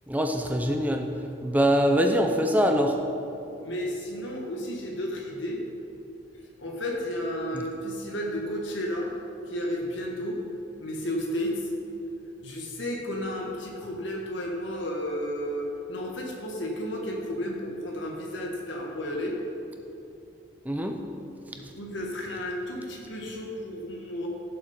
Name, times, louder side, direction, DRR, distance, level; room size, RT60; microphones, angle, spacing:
voice 1, 0.1-1.1 1.4-3.0 20.7-21.0, equal, 10° right, 4 dB, 0.6 m, -23 dB
voice 2, 3.6-5.6 6.6-9.1 9.5-10.4 10.8-11.7 12.4-19.4 21.5-24.3, equal, 70° left, -1 dB, 1.6 m, -32 dB
16.0 x 7.5 x 4.3 m, 2.9 s
head